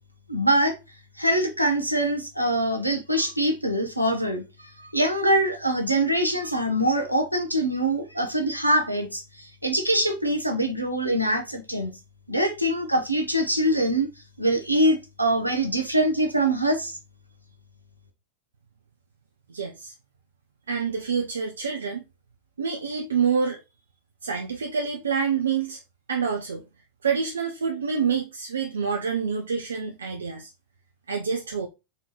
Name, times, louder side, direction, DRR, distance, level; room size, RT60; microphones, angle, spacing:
voice 1, 0.3-0.8 1.2-4.4 4.8-12.0 12.3-14.1 14.4-17.0, right 1 dB, 90° right, 0.9 m, -24 dB
voice 2, 19.5-19.9 20.7-22.0 22.6-23.6 24.2-25.8 26.1-26.6 27.0-30.5 31.1-31.7, right 6 dB, 70° right, 0.6 m, -27 dB
4.1 x 3.7 x 2.9 m
figure-of-eight pair, 90°, 0 cm